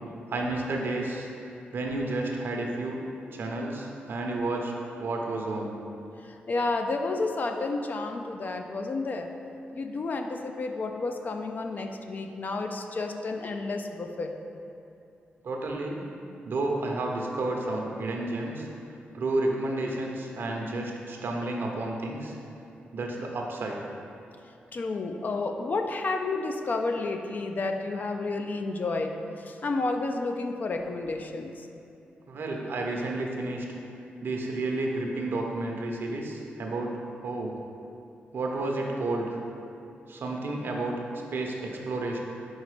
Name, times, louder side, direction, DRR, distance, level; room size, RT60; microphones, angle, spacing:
voice 1, 0.3-1.3 1.7-3.0 3.3-4.7 5.0-5.7 15.4-16.0 16.4-18.7 19.1-22.3 22.9-23.8 32.3-33.6 34.2-36.9 37.2-37.5 38.3-39.2 40.1-42.2, right 2 dB, 70° right, 0 dB, 0.8 m, -31 dB
voice 2, 6.5-9.3 9.7-14.3 24.7-29.1 29.4-31.5, left 3 dB, 50° left, 4 dB, 0.5 m, -31 dB
4.8 x 4.0 x 5.0 m, 2.7 s
cardioid pair, 65°, 4 cm